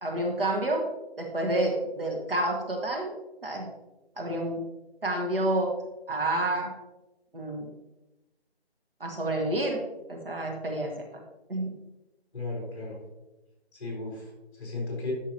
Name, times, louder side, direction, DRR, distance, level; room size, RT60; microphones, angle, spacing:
voice 1, 0.0-0.9 1.2-3.1 3.4-3.7 4.2-4.6 5.0-5.7 6.1-6.7 7.3-7.7 9.0-9.8 10.1-10.9 11.5-11.7, right 1 dB, 60° right, 1 dB, 1.6 m, -29 dB
voice 2, 12.3-13.0 13.7-15.1, left 2 dB, 15° left, -4 dB, 2.9 m, -35 dB
10.5 x 6.3 x 2.9 m, 1.0 s
figure-of-eight pair, 175°, 32 cm